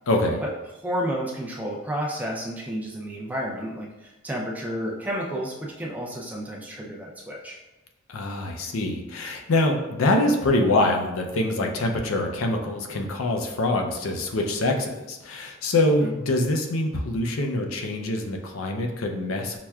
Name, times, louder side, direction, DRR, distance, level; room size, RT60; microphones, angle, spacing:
voice 1, 0.1-0.4 8.1-19.6, left 2 dB, 85° left, 3 dB, 0.5 m, -24 dB
voice 2, 0.8-7.6 16.0-16.1, equal, 10° right, -3 dB, 0.4 m, -31 dB
5.8 x 2.2 x 2.3 m, 1.0 s
head